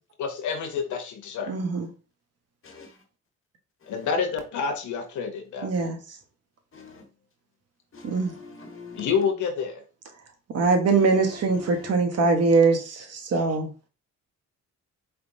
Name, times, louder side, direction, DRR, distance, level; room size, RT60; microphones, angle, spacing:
voice 1, 0.2-1.6 3.9-5.7 9.0-9.8, left 6 dB, 75° left, 0.8 m, -28 dB
voice 2, 1.5-1.9 5.6-6.0 8.0-8.3 10.5-13.7, right 4 dB, 55° right, 1.1 m, -22 dB
voice 3, 2.6-3.0 3.8-4.1 6.7-7.0 7.9-9.3 10.9-11.9, left 4 dB, 45° left, 1.4 m, -43 dB
4.4 x 3.5 x 2.7 m
cardioid pair, 90°, 30 cm